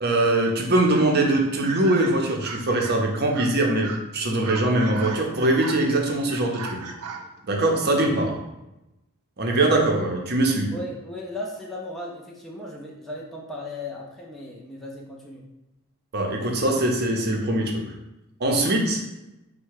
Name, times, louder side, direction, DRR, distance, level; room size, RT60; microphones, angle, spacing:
voice 1, 0.0-6.8 7.5-8.3 9.4-10.7 16.1-17.8 18.4-19.0, right 2 dB, 45° right, 1 dB, 0.7 m, -22 dB
sound 1, 0.9-1.1 1.6-3.0 3.3-3.6 3.8-4.0 4.4-5.9 6.3-7.8, right 5 dB, 85° right, 0.5 m, -37 dB
voice 2, 10.7-15.4, left 1 dB, ahead, -4 dB, 0.4 m, -36 dB
4.5 x 2.2 x 4.7 m, 0.95 s
head